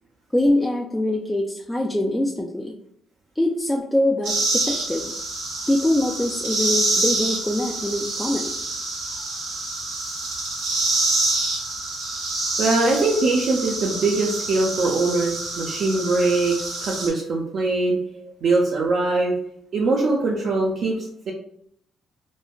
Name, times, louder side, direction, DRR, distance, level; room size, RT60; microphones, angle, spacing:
voice 1, 0.3-2.7 3.4-5.1 5.7-8.5 18.1-18.3, left 1 dB, 10° left, 1 dB, 0.3 m, -23 dB
sound 1, 4.2-17.1, right 2 dB, 90° right, 1.0 m, -27 dB
voice 2, 12.6-18.0 18.4-19.3 19.7-21.3, right 3 dB, 65° right, -2 dB, 0.5 m, -22 dB
3.1 x 2.1 x 2.3 m, 0.71 s
cardioid pair, 90°, 0 cm